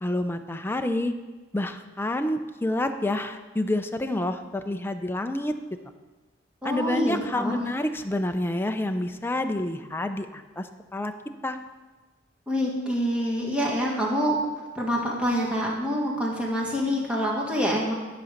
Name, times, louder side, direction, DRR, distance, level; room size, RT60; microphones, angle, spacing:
voice 1, 0.0-1.1 1.5-5.6 6.6-11.1 11.4-11.6, left 1 dB, 10° left, 7 dB, 0.5 m, -28 dB
voice 2, 6.6-7.6 12.5-14.4 14.8-17.9, equal, 5° right, -3 dB, 1.7 m, -26 dB
11.5 x 5.2 x 6.5 m, 1.2 s
head